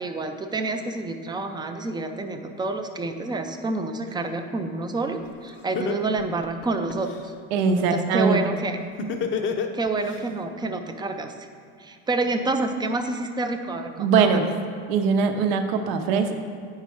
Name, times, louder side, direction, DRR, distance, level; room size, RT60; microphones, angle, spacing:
voice 1, 0.0-7.3 7.9-8.8 9.7-11.5 11.8-14.4, right 2 dB, 15° right, 6 dB, 0.4 m, -28 dB
Laughter, 5.2-5.3 5.8-7.2 9.0-10.2, left 6 dB, 35° left, 0.7 m, -28 dB
voice 2, 7.5-8.4 14.0-14.5 14.9-16.3, right 5 dB, 75° right, 6 dB, 0.8 m, -21 dB
9.1 x 5.6 x 4.7 m, 2.3 s
supercardioid pair, 125°, 33 cm